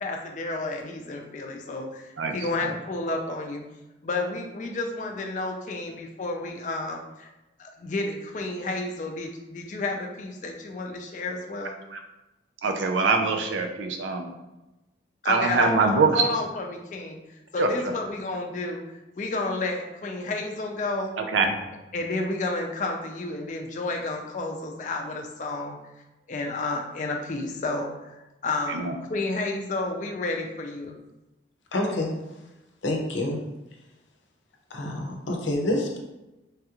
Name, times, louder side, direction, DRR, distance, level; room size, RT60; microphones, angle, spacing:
voice 1, 0.0-3.6 4.0-7.3 7.6-11.7 15.2-17.2 17.5-18.8 19.2-21.2 21.9-25.8 26.3-28.8 29.1-30.9, left 2 dB, 40° left, 2 dB, 0.4 m, -31 dB
voice 2, 12.6-14.3 15.3-16.2 17.6-17.7 21.2-21.5 28.7-28.9, right 4 dB, 90° right, 5 dB, 0.4 m, -23 dB
voice 3, 31.7-32.2 32.8-33.4 34.7-36.0, left 1 dB, 90° left, 1 dB, 0.6 m, -27 dB
3.2 x 2.4 x 2.9 m, 0.99 s
head